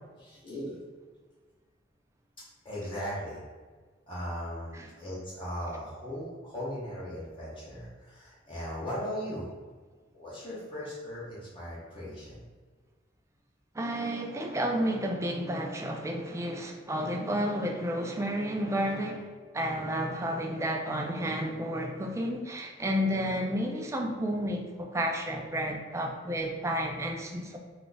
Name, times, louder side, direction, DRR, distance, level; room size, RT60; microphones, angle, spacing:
voice 1, 0.2-0.8 2.6-3.4 4.1-9.5 10.1-12.4, equal, 30° left, -8 dB, 0.7 m, -38 dB
voice 2, 13.7-19.3 19.5-27.6, equal, 15° right, 1 dB, 0.3 m, -31 dB
2.4 x 2.4 x 3.8 m, 1.4 s
head